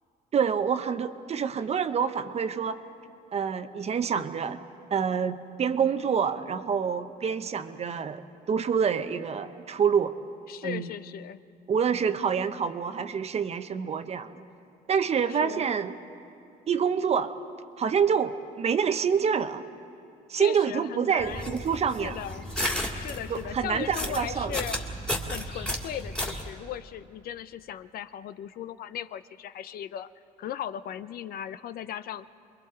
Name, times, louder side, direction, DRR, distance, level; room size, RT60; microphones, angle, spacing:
voice 1, 0.3-2.8 3.3-4.6 4.9-8.2 8.5-10.1 10.6-10.9 11.7-14.3 14.9-15.9 16.7-17.3 17.8-19.6 20.3-22.2 23.3-24.5, right 7 dB, 40° right, 10 dB, 0.8 m, -27 dB
voice 2, 10.5-11.4 15.3-15.6 20.4-21.6 22.0-22.5 22.9-24.8 25.2-30.1 30.4-32.3, left 10 dB, 60° left, 13 dB, 0.6 m, -37 dB
sound 1, 21.2-26.5, equal, 5° left, 2.2 m, -33 dB
29.0 x 22.0 x 4.4 m, 2.6 s
cardioid pair, 110°, 17 cm